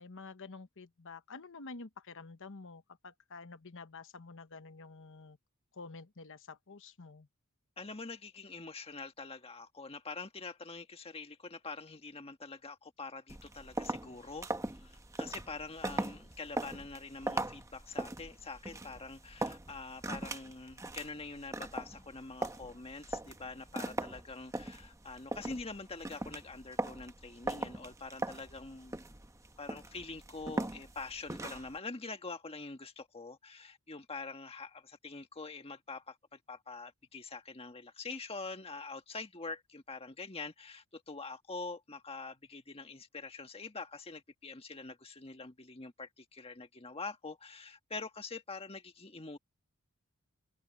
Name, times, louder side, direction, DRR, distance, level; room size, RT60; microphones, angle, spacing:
voice 1, 0.0-5.4 5.7-7.3, left 4 dB, 60° left, 1.1 m, -49 dB
voice 2, 7.8-28.9 29.6-49.4, left 3 dB, 25° left, 1.6 m, -45 dB
sound 1, 13.3-31.8, right 2 dB, 15° right, 1.0 m, -40 dB
head